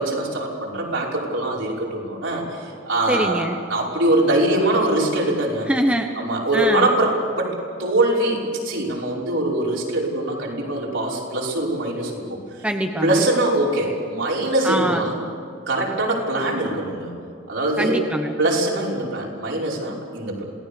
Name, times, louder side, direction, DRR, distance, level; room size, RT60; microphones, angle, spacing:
voice 1, 0.0-3.4 3.7-5.7 6.2-12.4 13.0-15.1 15.7-17.1 17.5-18.0 18.4-20.4, right 1 dB, 65° right, -3 dB, 5.7 m, -23 dB
voice 2, 3.1-3.6 5.7-6.1 6.5-6.9 12.6-13.2 14.6-15.1 17.8-18.3, right 1 dB, 5° right, 4 dB, 1.0 m, -23 dB
27.5 x 19.0 x 7.1 m, 2.3 s
head